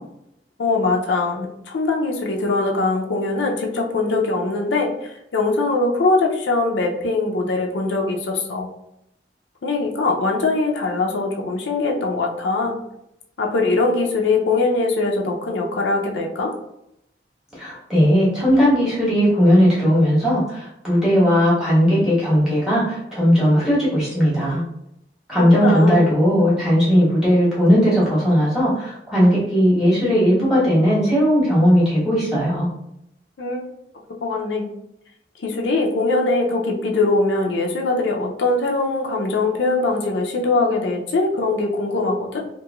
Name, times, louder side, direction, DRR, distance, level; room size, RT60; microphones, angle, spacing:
voice 1, 0.6-8.7 9.6-12.8 13.4-16.5 25.5-26.1 33.4-33.7 34.2-34.7 35.4-42.4, left 3 dB, 85° left, 0 dB, 0.5 m, -22 dB
voice 2, 17.6-24.6 25.3-32.7, equal, 5° right, -9 dB, 1.3 m, -17 dB
3.0 x 2.6 x 2.3 m, 0.80 s
head